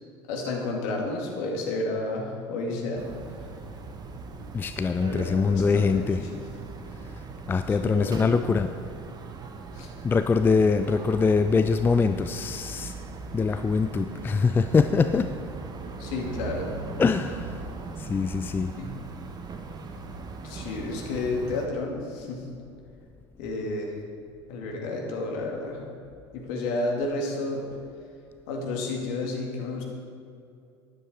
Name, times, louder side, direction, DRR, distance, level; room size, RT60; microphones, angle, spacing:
voice 1, 0.3-3.1 5.0-6.4 7.7-8.3 9.8-9.9 16.0-16.7 18.8-18.9 20.4-22.4 23.4-23.9 24.5-25.8 26.3-27.7 28.5-29.8, left 2 dB, 55° left, 1 dB, 2.2 m, -31 dB
sound 1, 3.0-21.7, right 4 dB, 30° right, 1.1 m, -39 dB
voice 2, 4.5-6.2 7.5-8.7 10.0-12.9 13.3-15.3 17.0-17.5 18.0-18.7, left 4 dB, 15° left, 9 dB, 0.4 m, -23 dB
13.0 x 9.8 x 4.4 m, 2.5 s
figure-of-eight pair, 75°, 14 cm